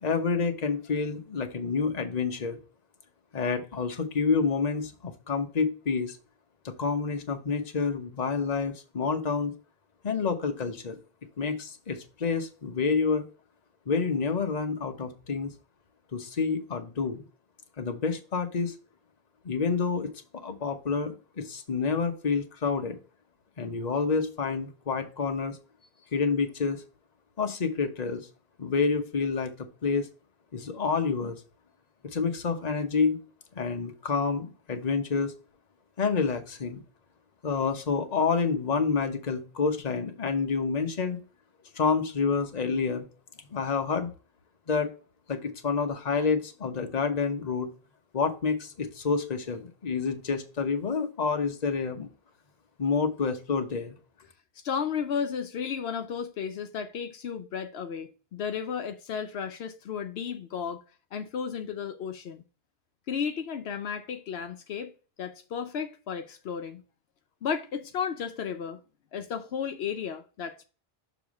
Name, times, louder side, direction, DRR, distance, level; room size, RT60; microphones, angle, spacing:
voice 1, 0.0-2.6 3.3-6.2 6.6-9.5 10.0-11.0 11.4-13.2 13.9-15.5 16.1-17.2 17.8-18.7 19.4-20.1 20.4-23.0 23.6-25.6 26.1-26.8 27.4-28.3 28.6-30.1 30.5-31.4 32.0-33.2 33.5-35.3 36.0-36.8 37.4-41.2 41.7-43.1 43.5-44.1 44.7-44.9 45.3-47.7 48.1-52.1 52.8-53.9, left 5 dB, 45° left, 1.0 m, -28 dB
voice 2, 54.6-60.8 61.1-62.4 63.1-64.9 65.2-66.8 67.4-68.8 69.1-70.7, left 7 dB, 80° left, 0.9 m, -33 dB
6.7 x 3.0 x 5.1 m
omnidirectional pair, 1.1 m